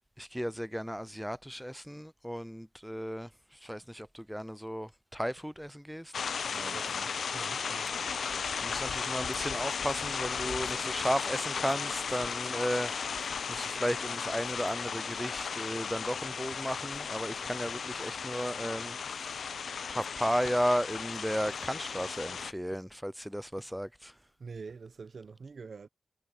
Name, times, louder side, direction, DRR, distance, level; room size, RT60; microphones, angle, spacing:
voice 1, 0.2-3.3 3.6-6.1 8.6-12.9 13.5-19.3 19.9-24.1, equal, ahead, 0.4 m, -34 dB
sound 1, 5.4-5.7 6.0-6.3 6.8-7.2 7.6-7.9 8.2-8.5 8.7-9.7 10.1-10.4 10.7-11.1 11.4-12.8 13.1-13.4 13.7-14.5 14.8-15.8 16.5-16.7 17.2-17.3 17.7-17.9 18.7-19.0 19.5-19.7 19.9-23.1 23.5-23.9 24.3-25.2, right 7 dB, 85° right, 5.8 m, -62 dB
sound 2, 6.1-22.5, left 6 dB, 65° left, 0.5 m, -35 dB
voice 2, 6.5-7.9 24.4-25.9, right 5 dB, 50° right, 0.8 m, -46 dB
wide cardioid pair, 135°, 0 cm